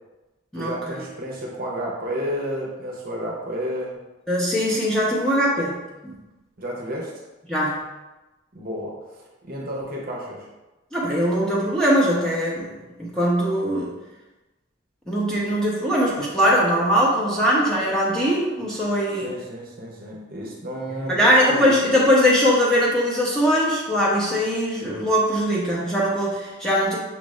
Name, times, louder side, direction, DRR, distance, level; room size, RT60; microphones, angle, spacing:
voice 1, 0.6-4.0 6.6-7.1 8.5-10.5 19.2-21.8, equal, 45° right, -3 dB, 0.8 m, -31 dB
voice 2, 4.3-6.1 7.5-7.8 10.9-12.7 13.0-13.9 15.1-19.3 21.1-27.0, equal, 5° left, -6 dB, 0.8 m, -21 dB
6.0 x 2.5 x 3.2 m, 1.1 s
head